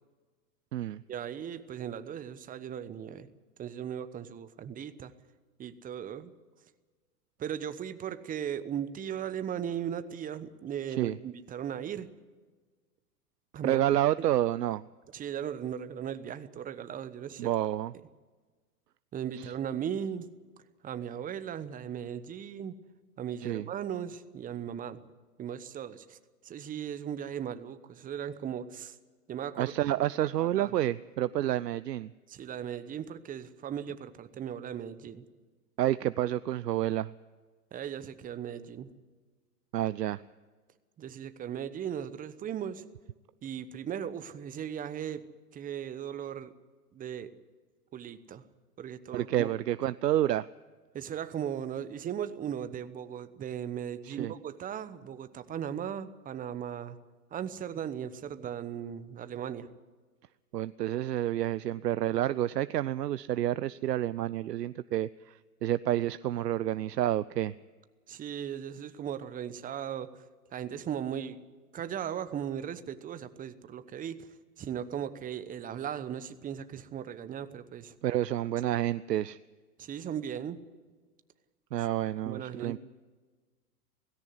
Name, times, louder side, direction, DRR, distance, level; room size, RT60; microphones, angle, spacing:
voice 1, 1.1-3.3 3.6-5.1 5.6-6.3 7.4-12.1 13.5-13.8 14.2-14.3 15.1-17.5 19.1-20.3 20.8-22.7 23.2-25.0 25.4-26.2 26.4-29.0 29.3-29.7 30.2-30.7 32.3-35.2 37.7-38.9 41.0-42.8 43.4-45.2 45.5-46.5 46.9-47.3 47.9-48.4 48.8-49.5 50.9-57.0 57.3-59.7 68.1-70.1 70.5-71.4 71.7-74.3 74.6-77.9 78.6-78.8 79.8-80.6 82.2-82.8, right 9 dB, 15° right, 12 dB, 1.0 m, -37 dB
voice 2, 13.6-14.8 17.4-17.9 19.4-19.5 23.4-23.7 29.6-32.1 35.8-37.1 39.7-40.2 49.1-50.5 54.0-54.3 60.5-67.5 78.0-79.4 81.7-82.8, right 13 dB, 85° right, 16 dB, 0.6 m, -29 dB
17.5 x 16.5 x 9.6 m, 1.4 s
hypercardioid pair, 115°, 47 cm